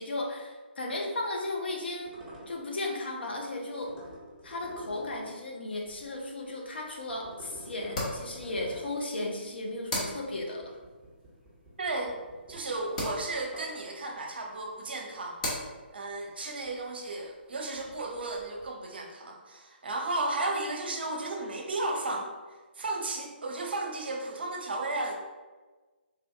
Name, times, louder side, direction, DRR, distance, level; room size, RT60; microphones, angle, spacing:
voice 1, 0.0-2.1 2.5-3.9 4.4-10.8, left 2 dB, 65° left, 0 dB, 0.7 m, -35 dB
sound 1, 1.0-6.6 7.0-13.8, right 1 dB, 5° right, 0.9 m, -51 dB
sound 2, 5.8-18.7, left 1 dB, 40° left, 1.0 m, -42 dB
voice 2, 11.8-12.1 12.5-15.4 15.9-22.3 22.8-25.2, right 2 dB, 65° right, 1 dB, 0.7 m, -34 dB
3.7 x 2.5 x 2.6 m, 1.3 s
figure-of-eight pair, 140°, 6 cm